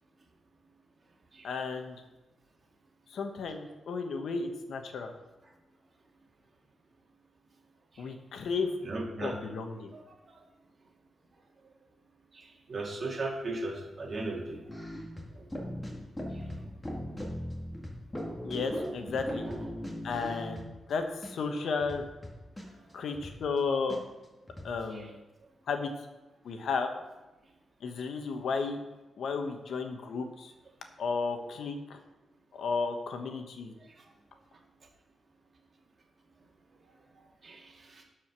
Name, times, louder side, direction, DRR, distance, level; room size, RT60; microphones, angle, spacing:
voice 1, 1.4-2.0 3.1-5.1 8.0-8.7 9.2-9.9 18.4-19.4 20.0-20.6 20.9-22.0 22.9-24.0 24.6-25.2 25.7-25.9 26.4-26.9 27.8-28.8 29.2-30.5 31.0-32.0 32.5-33.7, left 4 dB, 70° left, 6 dB, 1.1 m, -33 dB
voice 2, 8.8-9.4 9.9-10.0 12.3-14.6 15.4-15.5 16.3-16.5 19.4-19.6 24.9-25.1 37.4-38.0, right 2 dB, 40° right, 1 dB, 2.0 m, -37 dB
sound 1, 14.7-20.9 21.2-21.3 21.6-23.6 23.9-24.0 24.2-24.7, equal, 10° left, 2.0 m, -39 dB
12.0 x 4.9 x 6.0 m, 1.1 s
cardioid pair, 120°, 0 cm